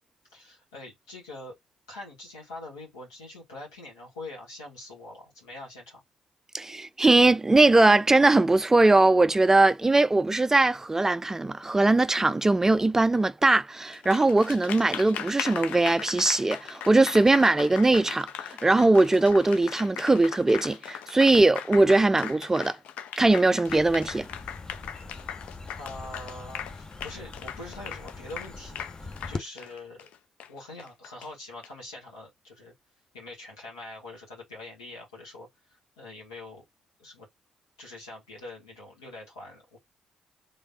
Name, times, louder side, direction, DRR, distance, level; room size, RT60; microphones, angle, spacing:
voice 1, 0.3-1.5 1.9-6.0 25.8-30.1 30.5-32.7 33.1-36.6 37.0-37.3 37.8-39.8, left 2 dB, 80° left, 1.6 m, -44 dB
voice 2, 6.5-22.8 23.2-24.3, right 2 dB, 20° right, 0.3 m, -21 dB
Applause, 13.9-31.7, left 9 dB, 60° left, 0.4 m, -39 dB
sound 1, 23.7-29.4, left 3 dB, 25° left, 0.7 m, -41 dB
3.6 x 3.2 x 2.7 m
figure-of-eight pair, 40°, 3 cm